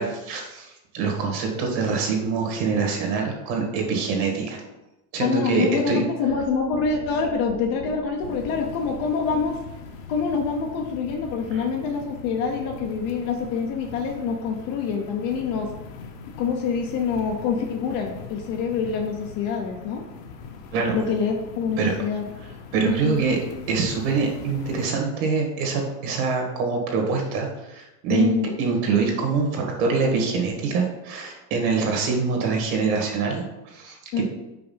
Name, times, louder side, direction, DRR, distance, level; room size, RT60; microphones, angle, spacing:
voice 1, 0.0-4.6 5.1-6.0 11.5-11.7 20.7-20.9 21.8-21.9 22.7-23.4 23.7-28.3 28.6-34.2, right 4 dB, 45° right, 1 dB, 1.9 m, -24 dB
voice 2, 5.2-9.6 10.1-15.7 16.4-20.0 20.9-22.2 22.8-23.2 28.1-28.5 34.1-34.2, left 5 dB, 35° left, 3 dB, 0.6 m, -26 dB
sound 1, 6.3-9.8, left 1 dB, 80° left, 1.5 m, -40 dB
sound 2, 8.2-24.9, left 5 dB, 55° left, 1.0 m, -41 dB
5.8 x 5.0 x 5.5 m, 0.99 s
supercardioid pair, 165°, 47 cm